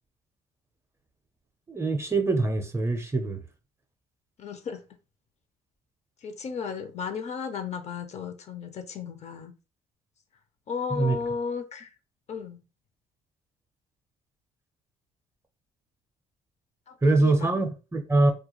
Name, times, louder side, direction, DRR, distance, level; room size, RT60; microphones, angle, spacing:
voice 1, 1.7-3.4 10.9-11.2 17.0-18.3, right 2 dB, 15° right, 0.5 m, -24 dB
voice 2, 4.4-4.8 6.2-9.5 10.7-11.9 12.3-12.6 16.9-17.5, left 6 dB, 40° left, 0.5 m, -34 dB
2.3 x 2.2 x 2.9 m
cardioid pair, 110°, 17 cm